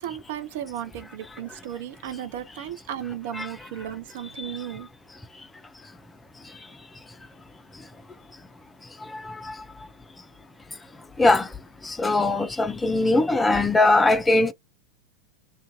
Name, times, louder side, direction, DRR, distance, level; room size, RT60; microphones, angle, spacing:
voice 1, 0.0-4.9, right 11 dB, 55° right, 0.5 m, -35 dB
voice 2, 9.1-9.5 11.2-11.5 11.8-14.5, left 2 dB, 10° left, 0.4 m, -21 dB
2.5 x 2.2 x 2.7 m
figure-of-eight pair, 90°, 0 cm